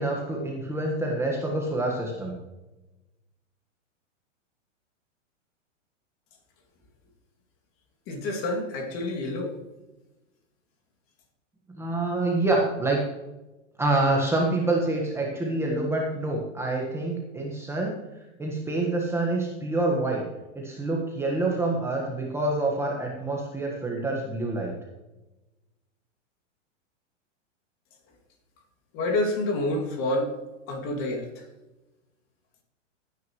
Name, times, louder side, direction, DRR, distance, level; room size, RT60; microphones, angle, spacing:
voice 1, 0.0-2.4 11.7-13.0 13.8-18.0 18.4-20.2 20.5-24.7, right 2 dB, 5° right, -1 dB, 1.4 m, -27 dB
voice 2, 8.1-9.6 28.9-30.4 30.7-31.4, left 1 dB, 35° left, 2 dB, 2.5 m, -28 dB
16.5 x 9.6 x 3.1 m, 1.1 s
hypercardioid pair, 145°, 38 cm